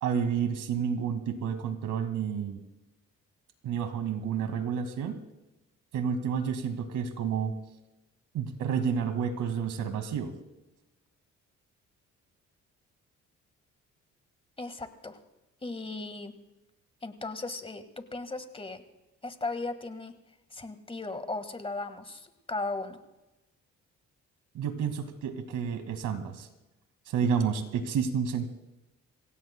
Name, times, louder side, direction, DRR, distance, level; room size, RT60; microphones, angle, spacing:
voice 1, 0.0-2.6 3.6-5.2 5.9-7.6 8.3-10.3 24.5-26.5 27.1-28.5, right 7 dB, 80° right, 8 dB, 2.1 m, -30 dB
voice 2, 14.6-15.2 15.6-16.3 17.0-17.8 18.1-18.8 19.2-20.1 20.5-23.0, left 3 dB, 20° left, 9 dB, 1.6 m, -36 dB
26.5 x 17.0 x 2.2 m, 1.0 s
cardioid pair, 90°, 30 cm